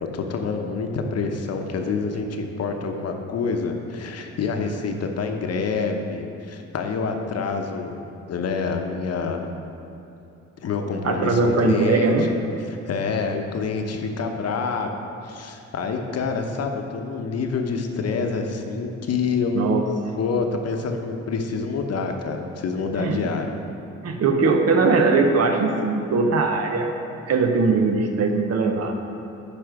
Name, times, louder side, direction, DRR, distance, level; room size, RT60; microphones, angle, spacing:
voice 1, 0.0-8.0 8.3-9.4 10.6-12.1 12.8-14.9 15.2-19.6 20.2-23.5, left 4 dB, 55° left, 4 dB, 0.9 m, -27 dB
voice 2, 11.0-12.3 19.5-19.9 23.0-23.2 24.0-26.9 27.3-29.0, right 4 dB, 55° right, 4 dB, 0.9 m, -20 dB
8.6 x 5.1 x 4.8 m, 2.8 s
cardioid pair, 90°, 30 cm